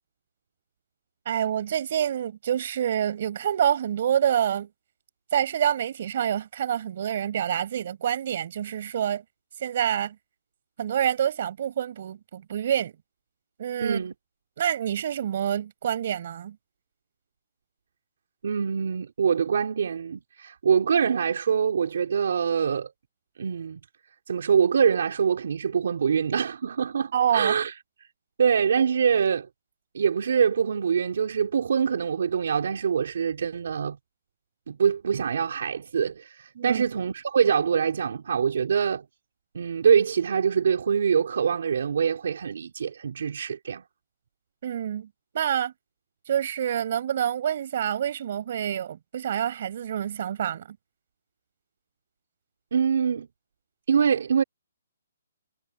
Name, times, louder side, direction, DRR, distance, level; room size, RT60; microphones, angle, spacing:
voice 1, 1.2-4.7 5.3-9.2 9.6-10.2 10.8-12.9 13.6-14.0 14.6-16.6 27.1-27.5 36.5-36.8 44.6-45.1 45.3-45.7 46.3-50.8, right 9 dB, 45° right, 6.4 m, -27 dB
voice 2, 13.8-14.1 18.4-22.9 23.4-23.8 24.3-27.7 28.4-29.5 29.9-34.0 34.7-39.1 39.5-43.8 52.7-53.3 53.9-54.4, right 7 dB, 65° right, 3.6 m, -24 dB
hypercardioid pair, 165°, 0 cm